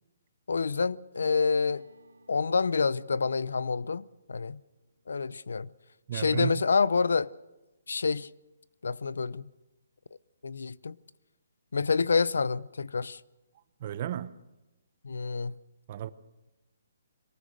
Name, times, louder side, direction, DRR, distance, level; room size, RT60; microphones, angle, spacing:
voice 1, 0.5-1.8 2.3-4.6 5.1-5.7 6.1-7.3 7.9-8.3 8.8-9.5 10.4-11.0 11.7-13.2 15.0-15.5, left 5 dB, 85° left, 0.6 m, -28 dB
sound 1, 1.1-7.7, right 3 dB, 90° right, 2.2 m, -60 dB
voice 2, 6.1-6.6 13.8-14.3 15.9-16.1, right 10 dB, 40° right, 1.0 m, -33 dB
22.5 x 19.5 x 6.5 m
hypercardioid pair, 160°, 0 cm